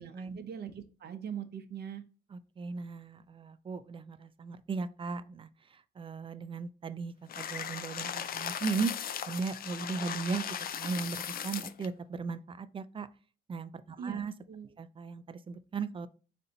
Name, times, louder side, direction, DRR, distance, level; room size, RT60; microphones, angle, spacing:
voice 1, 0.0-2.0 14.0-14.2 14.5-14.7, right 8 dB, 55° right, 8 dB, 0.7 m, -41 dB
voice 2, 2.3-8.9 9.3-13.1 13.5-14.3 14.8-16.1, right 5 dB, 25° right, 13 dB, 0.4 m, -37 dB
sound 1, 7.3-11.9, left 8 dB, 50° left, 0.4 m, -38 dB
4.2 x 2.6 x 3.9 m, 0.35 s
cardioid pair, 90°, 20 cm